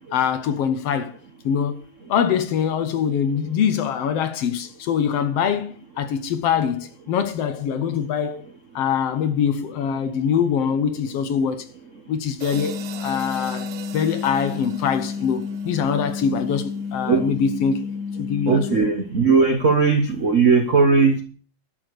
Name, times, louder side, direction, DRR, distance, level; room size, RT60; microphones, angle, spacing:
voice 1, 0.1-1.2 1.5-1.8 2.1-8.5 8.8-11.7 12.1-17.8 18.2-18.8, left 7 dB, 65° left, 1.8 m, -23 dB
sound 1, 12.4-16.8, right 11 dB, 90° right, 2.4 m, -41 dB
sound 2, 12.5-18.8, left 5 dB, 35° right, 1.8 m, -31 dB
voice 2, 18.5-21.2, right 4 dB, 65° right, 0.7 m, -18 dB
12.0 x 6.8 x 8.1 m
omnidirectional pair, 3.3 m